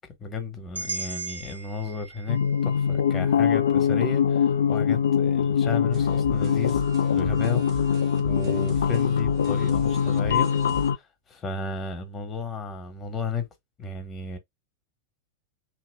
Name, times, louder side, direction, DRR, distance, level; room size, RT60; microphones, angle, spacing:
voice 1, 0.2-7.9 8.2-10.5 10.9-11.0 11.3-13.5 13.8-14.4, left 4 dB, 20° left, 1.2 m, -33 dB
sound 1, 0.7-4.8, right 4 dB, 80° right, 0.7 m, -39 dB
sound 2, 2.3-11.0, left 7 dB, 65° left, 0.4 m, -23 dB
sound 3, 5.9-10.9, right 4 dB, 35° right, 1.1 m, -40 dB
3.0 x 2.7 x 3.3 m
figure-of-eight pair, 90°, 0 cm